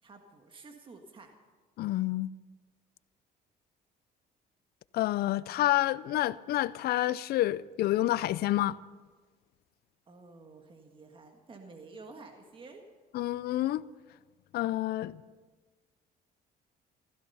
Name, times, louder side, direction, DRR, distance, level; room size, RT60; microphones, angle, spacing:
voice 1, 0.0-1.3 10.1-12.8, right 3 dB, 30° right, 1.7 m, -50 dB
voice 2, 1.8-2.3 4.9-8.8 13.1-13.8 14.5-15.2, left 15 dB, 70° left, 0.5 m, -28 dB
15.5 x 15.5 x 5.6 m
cardioid pair, 110°, 17 cm